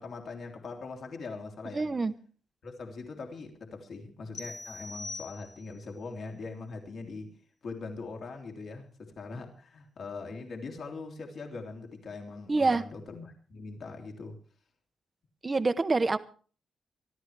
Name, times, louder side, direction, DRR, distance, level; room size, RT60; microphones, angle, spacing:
voice 1, 0.0-1.9 2.6-7.3 7.6-14.3, left 4 dB, 45° left, 2 dB, 3.2 m, -41 dB
voice 2, 1.7-2.1 12.5-12.8 15.4-16.2, right 3 dB, 20° right, 11 dB, 0.9 m, -26 dB
sound 1, 4.3-5.9, left 2 dB, 75° left, 4.6 m, -42 dB
24.5 x 12.5 x 3.3 m, 0.41 s
wide cardioid pair, 175°, 0 cm